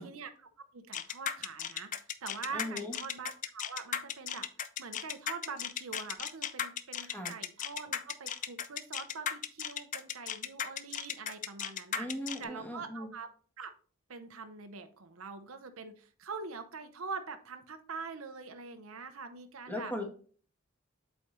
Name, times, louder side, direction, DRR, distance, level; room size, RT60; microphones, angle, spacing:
voice 1, 0.0-4.5 4.8-12.1 12.4-13.3 13.6-13.7 14.1-19.9, right 4 dB, 80° right, 8 dB, 0.8 m, -44 dB
sound 1, 0.9-12.4, left 9 dB, 35° left, 0.4 m, -36 dB
voice 2, 2.5-3.0 7.1-7.3 11.9-13.1 19.7-20.0, left 1 dB, 10° left, 1 dB, 1.4 m, -38 dB
8.0 x 4.4 x 3.1 m, 0.43 s
head